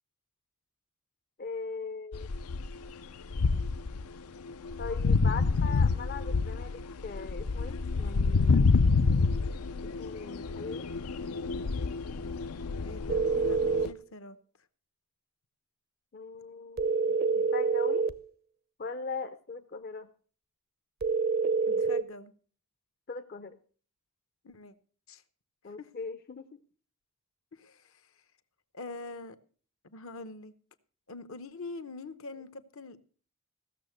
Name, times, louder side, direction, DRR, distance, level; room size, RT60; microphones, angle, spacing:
voice 1, 1.4-2.3 4.8-8.8 9.8-10.9 16.1-18.1 18.8-20.1 23.1-23.6 25.6-26.6, left 4 dB, 45° left, 0.5 m, -40 dB
sound 1, 2.1-2.9 3.3-4.1 4.5-13.9, left 4 dB, 90° left, 0.5 m, -28 dB
voice 2, 12.8-14.4 21.7-22.3 24.4-24.7 25.1-25.2 25.8-25.9 27.5-27.9 28.7-29.4 29.9-30.5 31.1-33.0, left 3 dB, 70° left, 0.9 m, -44 dB
sound 2, 13.1-14.0 16.8-18.2 21.0-22.0, right 4 dB, 45° right, 0.5 m, -27 dB
15.5 x 6.6 x 6.4 m
head